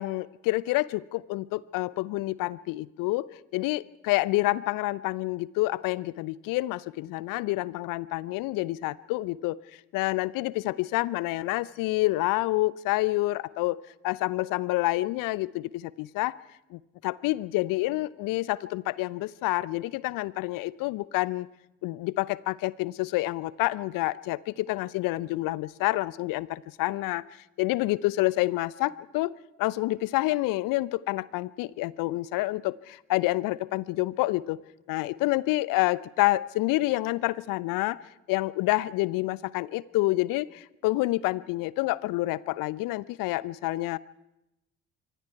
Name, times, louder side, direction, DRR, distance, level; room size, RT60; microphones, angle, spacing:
voice 1, 0.0-3.3 3.5-9.6 9.9-13.8 14.0-16.3 16.7-21.5 21.8-27.2 27.6-29.3 29.6-34.6 34.9-38.0 38.3-44.0, left 19 dB, 60° left, 21 dB, 0.7 m, -28 dB
26.5 x 23.5 x 4.7 m, 0.91 s
figure-of-eight pair, 50°, 37 cm